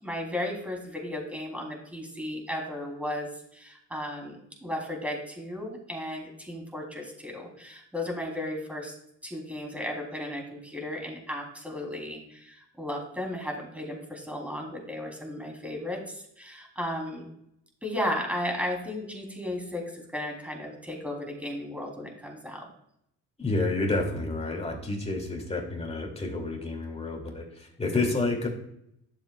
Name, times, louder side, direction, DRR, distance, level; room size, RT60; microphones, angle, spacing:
voice 1, 0.0-8.9 9.2-17.3 17.8-22.7, left 1 dB, 5° right, 0 dB, 3.1 m, -35 dB
voice 2, 23.4-28.5, left 2 dB, 20° left, 1 dB, 2.4 m, -29 dB
11.5 x 7.4 x 2.3 m, 0.74 s
cardioid pair, 90°, 30 cm